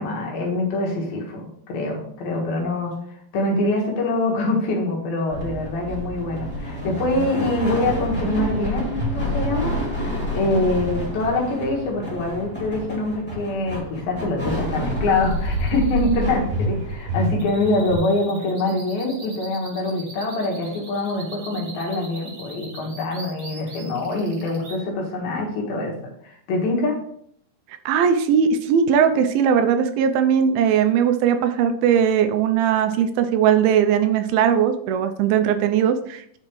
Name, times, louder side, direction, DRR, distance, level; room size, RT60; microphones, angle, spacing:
voice 1, 0.0-2.9 3.3-8.8 9.1-9.7 10.0-25.9 26.2-27.0, left 2 dB, 75° left, -1 dB, 3.3 m, -24 dB
sound 1, 5.3-18.0, equal, 5° left, 2.0 m, -28 dB
sound 2, 15.0-24.8, right 2 dB, 40° right, 1.8 m, -42 dB
voice 2, 27.9-36.4, right 8 dB, 80° right, 8 dB, 2.4 m, -19 dB
9.7 x 5.0 x 3.1 m, 0.66 s
omnidirectional pair, 4.4 m